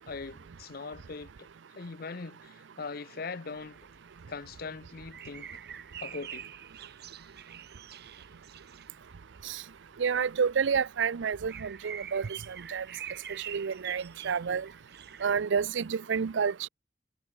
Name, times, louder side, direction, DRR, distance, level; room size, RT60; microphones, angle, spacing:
voice 1, 0.1-1.5 1.8-3.8 4.3-5.5 6.0-6.5, left 4 dB, 55° left, 0.7 m, -41 dB
sound 1, 3.6-15.4, right 9 dB, 55° right, 4.6 m, -47 dB
voice 2, 10.0-12.8 13.5-14.7 15.2-16.7, right 6 dB, 80° right, 0.5 m, -29 dB
head